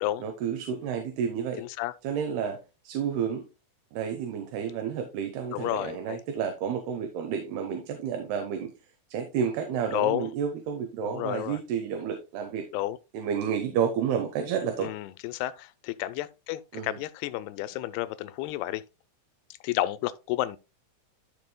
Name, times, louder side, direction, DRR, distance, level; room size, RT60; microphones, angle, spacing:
voice 1, 0.2-1.6 2.0-2.6 2.8-3.4 3.9-8.7 9.1-12.6 13.1-14.9 16.7-16.9, right 7 dB, 75° right, 2.8 m, -30 dB
voice 2, 1.6-1.9 5.5-6.2 9.9-10.3 11.0-11.6 12.7-13.0 14.8-18.8 19.6-20.6, left 14 dB, 85° left, 2.5 m, -31 dB
13.0 x 5.2 x 2.2 m
omnidirectional pair, 4.7 m